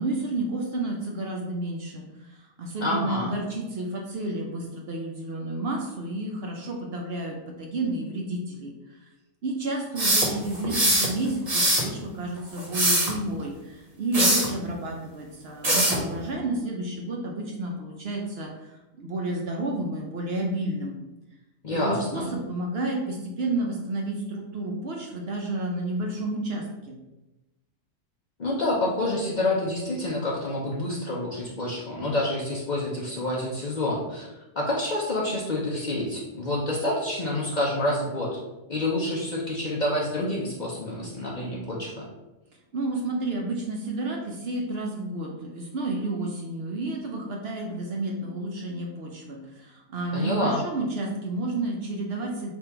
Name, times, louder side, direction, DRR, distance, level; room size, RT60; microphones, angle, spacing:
voice 1, 0.0-9.1 9.4-21.0 21.8-26.9 42.7-52.5, right 2 dB, 60° right, 0 dB, 0.8 m, -31 dB
voice 2, 2.8-3.3 21.6-22.3 28.4-34.3 34.6-38.4 38.7-42.0 50.1-50.6, left 1 dB, 45° left, -4 dB, 0.7 m, -28 dB
sound 1, 10.0-11.1 11.5-11.9 12.6-13.1 14.1-14.5 15.6-16.0, right 1 dB, 35° right, 1.0 m, -22 dB
3.5 x 2.5 x 4.4 m, 1.0 s
omnidirectional pair, 1.3 m